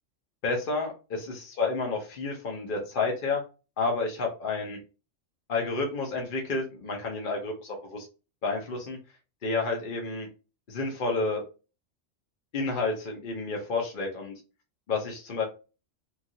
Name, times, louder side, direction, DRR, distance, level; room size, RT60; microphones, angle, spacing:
voice 1, 0.4-3.4 3.8-4.8 5.5-8.1 8.4-9.0 9.4-10.3 10.7-11.4 12.5-14.3 14.9-15.4, left 3 dB, 50° left, 1 dB, 0.8 m, -30 dB
3.1 x 2.3 x 2.6 m, 0.32 s
omnidirectional pair, 1.3 m